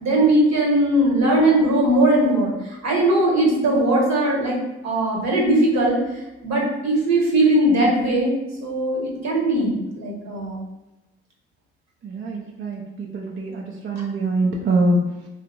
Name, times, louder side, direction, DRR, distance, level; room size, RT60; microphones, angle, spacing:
voice 1, 0.0-2.5 2.8-6.0 6.4-8.3 8.6-10.6, right 1 dB, 60° right, -2 dB, 1.0 m, -19 dB
voice 2, 12.0-15.3, right 1 dB, 40° right, -1 dB, 0.4 m, -24 dB
3.3 x 2.0 x 2.4 m, 0.99 s
hypercardioid pair, 40°, 32 cm